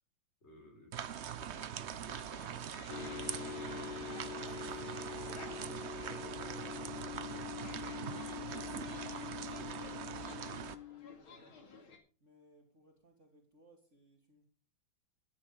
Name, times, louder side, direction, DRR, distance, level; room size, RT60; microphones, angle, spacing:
voice 1, 0.4-5.2 5.4-9.0 9.4-10.0, left 2 dB, 30° left, 2 dB, 4.7 m, -60 dB
sound 1, 0.9-10.8, right 9 dB, 70° right, 0.6 m, -43 dB
sound 2, 2.1-12.0, left 4 dB, 80° left, 3.2 m, -55 dB
sound 3, 2.9-11.2, left 10 dB, 65° left, 1.6 m, -45 dB
voice 2, 11.0-11.8 12.2-14.4, right 1 dB, 35° right, 2 dB, 3.1 m, -65 dB
11.5 x 10.5 x 5.4 m, 0.36 s
omnidirectional pair, 2.2 m